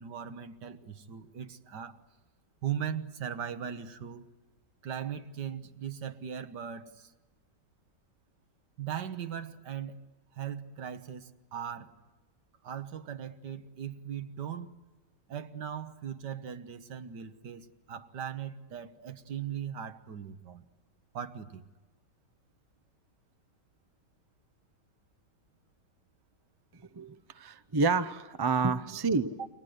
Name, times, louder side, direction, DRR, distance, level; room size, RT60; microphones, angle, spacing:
voice 1, 0.0-2.0 2.6-4.3 4.8-7.1 8.8-10.0 10.3-11.9 12.6-14.7 15.3-20.7 21.1-21.6 29.4-29.5, right 8 dB, 80° right, 9 dB, 1.9 m, -39 dB
voice 2, 26.9-29.3, right 4 dB, 30° right, 11 dB, 0.4 m, -29 dB
29.5 x 24.0 x 8.0 m, 1.2 s
omnidirectional pair, 1.8 m